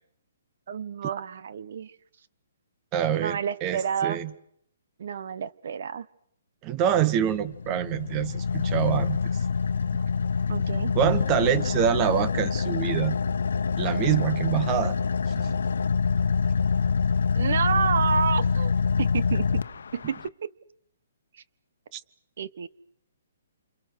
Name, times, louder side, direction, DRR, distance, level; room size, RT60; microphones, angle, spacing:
voice 1, 0.7-1.9 3.2-4.2 5.0-6.1 10.5-10.9 17.3-18.7 19.0-19.5 19.9-20.5 21.3-21.4 22.4-22.7, right 7 dB, 55° right, 1.4 m, -29 dB
voice 2, 2.9-4.3 6.6-9.4 10.9-13.2 13.8-15.0 15.4-15.6 21.9-22.0, right 10 dB, 20° right, 1.1 m, -26 dB
Car / Idling, 7.3-20.3, left 5 dB, 80° left, 1.0 m, -26 dB
28.5 x 28.0 x 6.4 m
hypercardioid pair, 170°, 0 cm